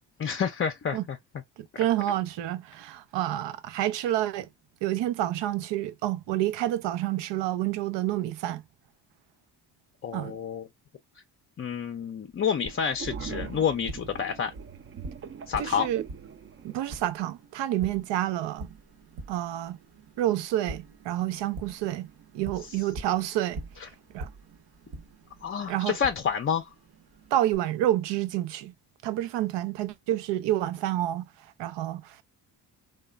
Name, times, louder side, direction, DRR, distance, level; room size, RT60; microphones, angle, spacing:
voice 1, 0.2-1.2 10.0-10.7 11.6-14.5 15.5-15.9 23.8-23.9 25.4-26.7, left 7 dB, 30° left, 0.4 m, -29 dB
voice 2, 1.6-4.5 4.8-8.6 10.1-10.4 15.6-16.0 16.6-18.7 19.3-19.8 20.2-22.1 22.3-23.6 24.1-24.3 25.7-26.0 27.3-28.7 29.0-31.3 31.6-32.2, right 13 dB, 85° right, 0.6 m, -28 dB
sound 1, 12.6-17.0, right 6 dB, 30° right, 0.4 m, -41 dB
Tap, 12.7-27.6, right 2 dB, 60° right, 0.9 m, -45 dB
2.9 x 2.2 x 2.2 m
cardioid pair, 80°, 41 cm